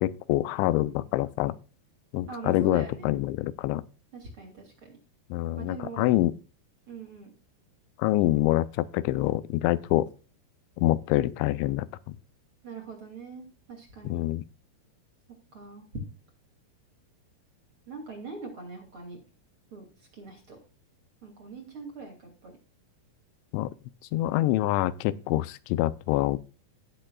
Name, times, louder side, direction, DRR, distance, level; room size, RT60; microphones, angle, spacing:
voice 1, 0.0-1.6 2.1-3.8 5.3-6.4 8.0-10.1 10.8-12.2 14.0-14.4 23.5-23.7 24.1-26.4, left 15 dB, 90° left, 2.9 m, -26 dB
voice 2, 2.3-3.1 4.1-5.0 5.6-6.1 6.9-7.3 12.6-14.2 15.5-16.0 17.9-19.2 19.7-20.6 21.2-22.6, right 4 dB, 35° right, 2.8 m, -42 dB
18.0 x 6.7 x 2.3 m
omnidirectional pair, 5.1 m